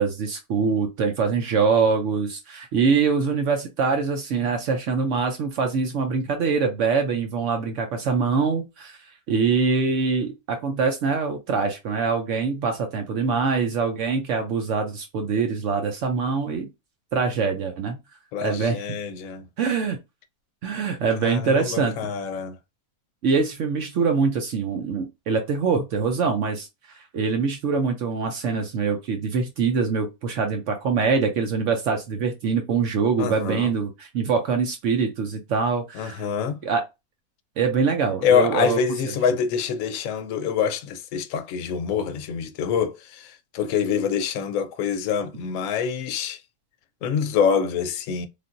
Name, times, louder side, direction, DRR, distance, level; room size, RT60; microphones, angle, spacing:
voice 1, 0.0-9.0 9.3-16.7 17.1-18.0 18.4-19.0 19.6-20.0 20.6-21.9 23.2-36.2 36.6-36.8 37.6-38.8, right 5 dB, 70° right, 0.8 m, -24 dB
voice 2, 18.3-19.5 21.2-22.6 33.2-33.7 35.9-36.6 38.2-46.4 47.0-48.3, left 7 dB, 70° left, 0.9 m, -25 dB
3.4 x 2.4 x 2.5 m
omnidirectional pair, 1.7 m